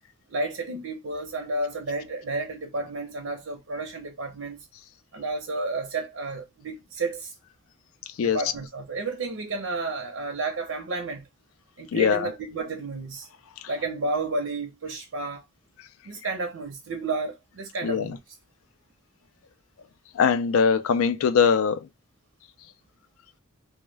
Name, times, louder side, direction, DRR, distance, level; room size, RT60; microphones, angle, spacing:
voice 1, 0.3-4.7 5.1-7.3 8.2-11.3 11.8-13.3 13.7-15.4 16.0-18.2, right 3 dB, 85° right, 0.6 m, -31 dB
voice 2, 11.9-12.3 17.8-18.2 20.1-21.8, left 6 dB, 85° left, 0.4 m, -21 dB
2.2 x 2.1 x 3.2 m
head